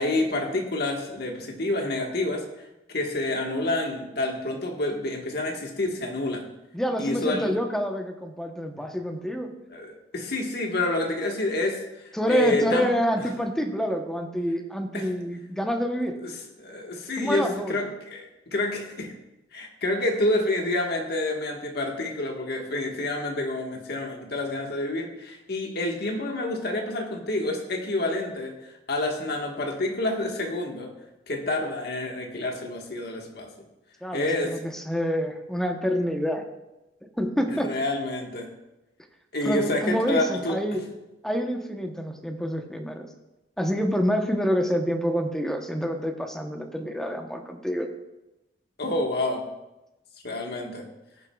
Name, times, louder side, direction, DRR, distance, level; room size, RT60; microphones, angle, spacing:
voice 1, 0.0-2.5 2.9-6.5 7.0-7.6 9.7-12.9 14.9-15.1 16.6-18.2 18.5-19.1 19.5-28.6 28.9-30.9 31.3-33.5 34.1-34.6 37.6-38.5 39.3-40.6 48.8-49.4 50.2-50.9, left 2 dB, 60° left, 2 dB, 1.5 m, -28 dB
voice 2, 6.7-9.5 12.1-16.2 17.2-17.8 34.0-36.4 37.2-37.7 39.4-40.8 41.2-43.1 43.6-47.9, equal, 5° left, 4 dB, 0.9 m, -27 dB
19.0 x 7.3 x 2.3 m, 0.98 s
head